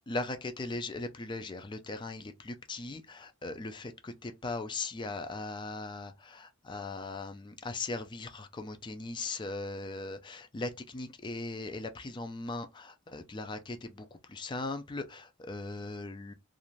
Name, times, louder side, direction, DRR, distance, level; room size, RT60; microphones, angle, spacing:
voice 1, 0.1-16.3, left 3 dB, 20° left, 0.4 m, -39 dB
2.5 x 2.5 x 3.0 m
head